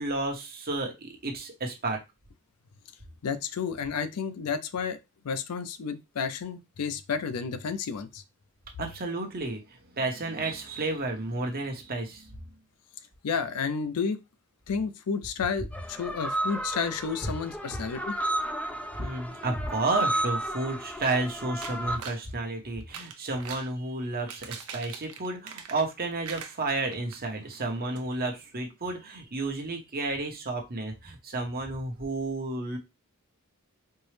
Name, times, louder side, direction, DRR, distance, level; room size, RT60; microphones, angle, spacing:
voice 1, 0.0-2.0 8.8-12.3 19.0-32.8, right 2 dB, 45° right, 0.9 m, -32 dB
voice 2, 3.2-5.0 5.2-8.2 13.2-14.2 14.7-18.2, left 6 dB, 85° left, 0.5 m, -31 dB
sound 1, 15.7-22.0, right 1 dB, 5° left, 0.4 m, -33 dB
sound 2, 21.6-22.2 22.8-23.7 24.1-26.0 26.2-27.2 27.5-27.6 28.0-28.1, right 7 dB, 75° right, 0.6 m, -42 dB
4.4 x 2.0 x 3.2 m
head